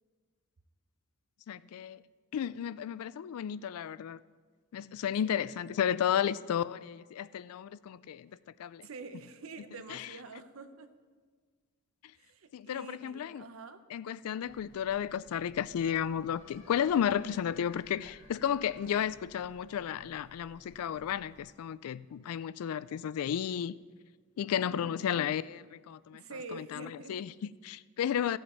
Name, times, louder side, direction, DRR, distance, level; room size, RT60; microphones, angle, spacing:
voice 1, 1.5-2.0 2.3-4.2 4.7-8.3 8.6-8.9 9.9-10.1 12.5-13.4 13.9-23.8 24.4-26.2 26.5-28.4, left 9 dB, 75° left, 0.3 m, -33 dB
voice 2, 8.8-10.9 12.2-13.8 24.5-25.0 26.1-27.2, right 3 dB, 65° right, 0.7 m, -46 dB
sound 1, 14.4-21.4, left 1 dB, 60° left, 1.7 m, -58 dB
15.0 x 7.8 x 4.4 m
head